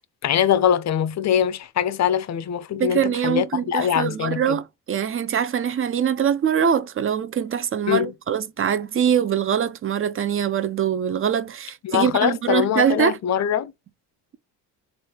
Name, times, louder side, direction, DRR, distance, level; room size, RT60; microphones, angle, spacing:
voice 1, 0.2-4.6 7.9-8.1 11.8-13.7, left 9 dB, 40° left, 0.5 m, -22 dB
voice 2, 2.8-13.2, right 8 dB, 30° right, 0.4 m, -23 dB
3.2 x 2.5 x 4.2 m
supercardioid pair, 80°, 46 cm